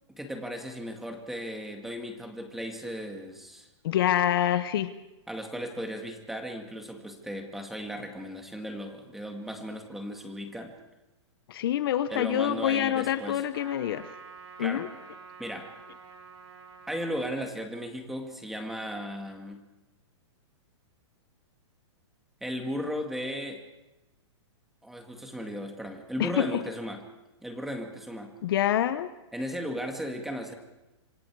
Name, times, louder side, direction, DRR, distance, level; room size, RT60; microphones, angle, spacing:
voice 1, 0.1-3.7 5.3-10.7 12.1-13.4 14.6-14.8 15.4-15.7 16.9-19.6 22.4-23.6 24.8-27.0 27.4-28.3 29.3-30.5, equal, ahead, 3 dB, 2.1 m, -36 dB
voice 2, 3.8-4.9 11.5-14.1 14.6-14.9 26.2-26.4 28.4-29.1, left 11 dB, 50° left, 11 dB, 1.0 m, -26 dB
Trumpet, 13.5-17.2, right 5 dB, 70° right, 4.3 m, -48 dB
26.5 x 25.5 x 4.8 m, 0.99 s
hypercardioid pair, 165°, 15 cm